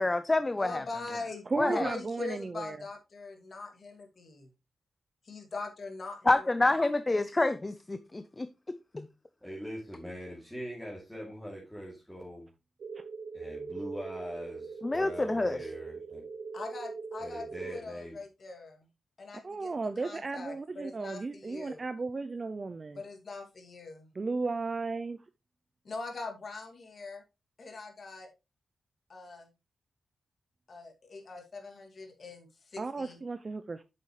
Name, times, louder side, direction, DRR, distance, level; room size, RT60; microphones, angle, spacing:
voice 1, 0.0-0.8 1.6-1.9 6.3-8.5 8.9-9.1 14.8-15.7, left 2 dB, 20° left, 0.4 m, -27 dB
voice 2, 0.6-4.4 5.2-6.5 16.5-18.8 19.2-21.8 22.9-24.1 25.8-27.2 27.6-28.3 29.1-29.5 30.7-33.2, left 3 dB, 50° left, 2.4 m, -42 dB
voice 3, 1.5-2.8 19.4-23.0 24.1-25.2 32.8-33.8, right 3 dB, 35° right, 0.5 m, -34 dB
voice 4, 9.4-12.5 13.3-16.2 17.2-18.2, equal, 5° left, 2.8 m, -42 dB
sound 1, 12.8-17.8, right 4 dB, 70° right, 0.8 m, -41 dB
8.5 x 6.8 x 3.2 m
wide cardioid pair, 125°, 0 cm